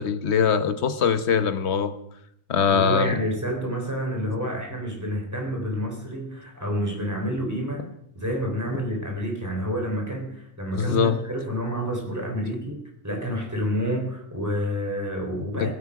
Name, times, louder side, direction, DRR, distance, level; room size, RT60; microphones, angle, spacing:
voice 1, 0.0-1.9 2.5-3.1 10.7-11.2 15.6-15.7, left 6 dB, 70° left, 12 dB, 1.2 m, -22 dB
voice 2, 2.7-7.8 8.2-15.7, equal, 15° right, 0 dB, 3.4 m, -29 dB
21.0 x 8.3 x 4.8 m, 0.75 s
omnidirectional pair, 1.2 m